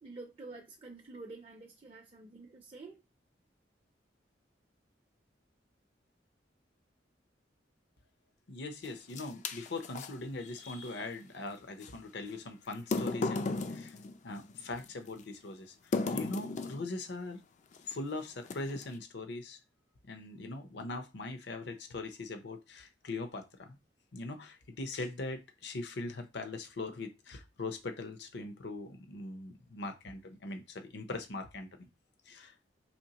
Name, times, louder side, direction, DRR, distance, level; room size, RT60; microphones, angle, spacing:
voice 1, 0.0-3.0, right 3 dB, 30° right, 0.5 m, -48 dB
voice 2, 8.5-14.0 14.2-15.7 16.1-17.4 17.8-19.6 20.0-23.8 24.1-31.9 32.3-32.5, left 2 dB, 70° left, 0.7 m, -41 dB
sound 1, 8.8-10.1 11.8-11.9 12.7-14.9 15.9-16.9 17.7-17.9 18.4-18.9, left 3 dB, 45° left, 0.4 m, -35 dB
4.3 x 3.0 x 2.9 m
head